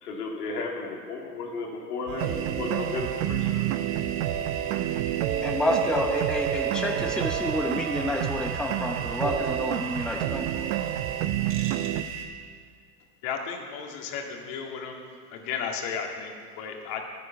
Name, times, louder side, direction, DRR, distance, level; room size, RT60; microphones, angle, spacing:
voice 1, 0.0-2.3 2.6-3.7, left 4 dB, 70° left, 0 dB, 2.4 m, -34 dB
sound 1, 2.1-12.0, right 12 dB, 40° right, 0.6 m, -29 dB
sound 2, 2.2-12.3, right 7 dB, 25° right, 2.0 m, -37 dB
voice 2, 5.4-10.7, left 1 dB, ahead, 2 dB, 0.8 m, -29 dB
voice 3, 13.2-15.0 15.3-17.0, left 6 dB, 50° left, 2 dB, 2.1 m, -34 dB
12.0 x 9.5 x 5.9 m, 2.1 s
hypercardioid pair, 100°, 48 cm